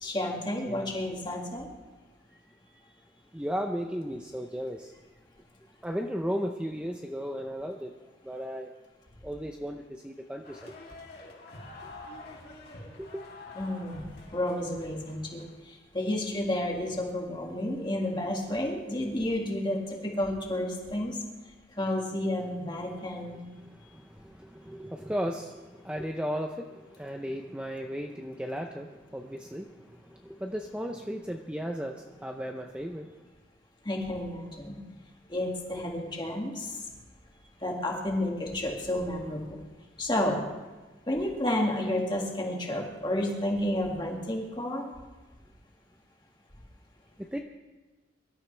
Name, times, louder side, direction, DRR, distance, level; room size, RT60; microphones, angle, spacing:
voice 1, 0.0-1.7 13.6-14.0 14.3-15.4 15.9-21.2 21.8-23.5 33.9-34.8 35.3-36.7 37.6-39.6 40.0-40.4 41.1-44.9, left 1 dB, 25° left, 0 dB, 2.1 m, -31 dB
voice 2, 2.7-3.0 3.3-5.0 5.8-7.9 8.2-8.7 9.2-10.7 11.8-11.9 13.0-13.2 22.9-33.2 37.3-37.5 47.3-47.4, equal, 5° right, 3 dB, 0.6 m, -36 dB
sound 1, 10.4-15.6, left 2 dB, 55° left, 3.0 m, -47 dB
23.5 x 12.5 x 3.3 m, 1.2 s
head